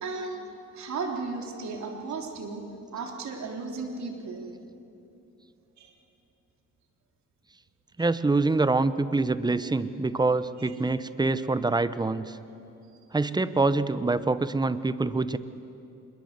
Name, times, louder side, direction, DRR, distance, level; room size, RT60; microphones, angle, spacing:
voice 1, 0.0-0.5 0.7-2.6 2.9-4.4 5.8-5.9, right 4 dB, 65° right, 2 dB, 3.6 m, -35 dB
voice 2, 8.0-12.4 13.1-15.4, right 3 dB, 15° right, 14 dB, 0.9 m, -25 dB
26.0 x 22.0 x 8.2 m, 2.8 s
cardioid pair, 90°, 30 cm